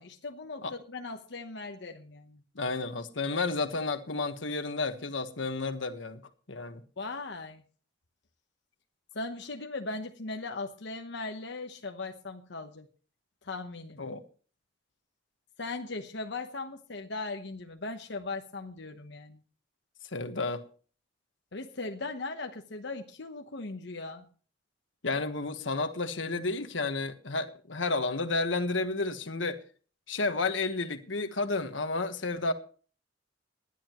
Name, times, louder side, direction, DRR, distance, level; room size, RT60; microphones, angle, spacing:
voice 1, 0.0-2.4 7.0-7.6 9.1-12.9 13.4-14.0 15.6-19.4 21.5-24.3, left 3 dB, 65° left, 1.1 m, -38 dB
voice 2, 2.5-6.2 6.5-6.8 14.0-14.2 20.1-20.6 25.0-29.6 30.1-32.5, left 3 dB, 85° left, 1.4 m, -31 dB
19.5 x 11.5 x 3.1 m
head